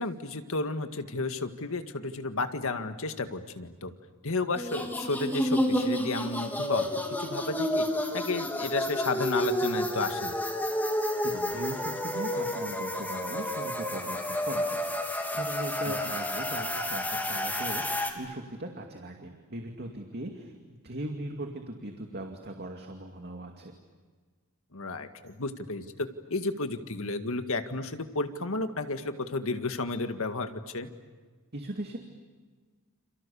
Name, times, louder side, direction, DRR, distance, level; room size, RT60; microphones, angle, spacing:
voice 1, 0.0-3.9 4.2-6.9 7.2-7.9 8.1-10.3 24.7-30.9, left 3 dB, 65° left, 7 dB, 1.9 m, -32 dB
sound 1, 4.5-18.1, left 1 dB, 10° left, 3.3 m, -30 dB
voice 2, 11.2-20.5 20.8-23.7 31.5-32.0, right 1 dB, 50° right, 3 dB, 2.4 m, -39 dB
29.5 x 28.5 x 7.1 m, 1.4 s
head